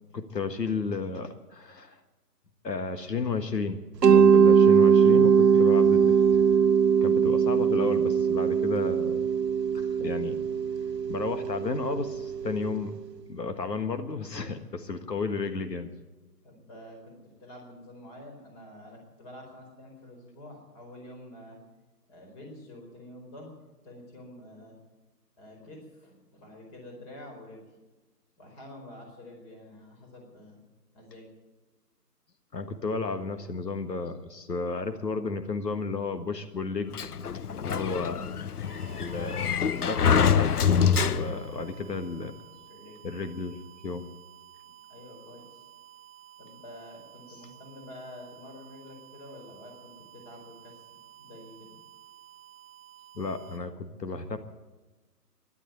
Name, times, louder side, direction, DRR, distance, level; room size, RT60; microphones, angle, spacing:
voice 1, 0.1-2.0 2.6-6.2 7.0-9.3 9.7-10.4 11.1-12.9 13.3-15.9 32.5-36.9 37.2-38.3 38.9-42.3 43.0-44.1 53.1-54.4, left 4 dB, 90° left, 8 dB, 1.6 m, -33 dB
Mallet percussion, 4.0-12.8, right 7 dB, 85° right, 0.7 m, -21 dB
voice 2, 16.4-21.6 22.1-23.5 23.8-24.8 25.4-27.6 28.4-30.6 30.9-31.3 37.6-37.8 42.7-43.0 44.9-45.7 46.4-51.8, left 1 dB, 20° left, 1 dB, 4.6 m, -48 dB
Sliding door, 36.9-41.6, left 7 dB, 70° left, 0.8 m, -25 dB
sound 1, 38.6-53.6, right 11 dB, 20° right, 1.2 m, -53 dB
12.5 x 11.5 x 9.3 m, 1.2 s
figure-of-eight pair, 155°, 48 cm